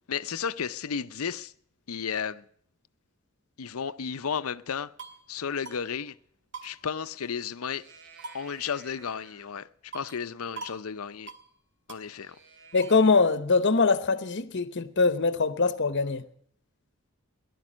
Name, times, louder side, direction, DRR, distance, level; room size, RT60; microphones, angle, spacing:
voice 1, 0.1-1.5 1.9-2.4 3.6-4.9 5.3-6.1 6.6-7.8 8.3-11.3 11.9-12.4, left 6 dB, 80° left, 0.6 m, -33 dB
sound 1, 4.7-5.3 5.7-5.8 6.1-6.2 6.5-7.5 7.8-9.5 9.9-10.3 10.6-10.8 11.1-11.5 11.9-13.1, right 4 dB, 60° right, 2.2 m, -45 dB
voice 2, 12.7-16.2, left 4 dB, 55° left, 0.9 m, -23 dB
18.0 x 12.0 x 6.2 m
head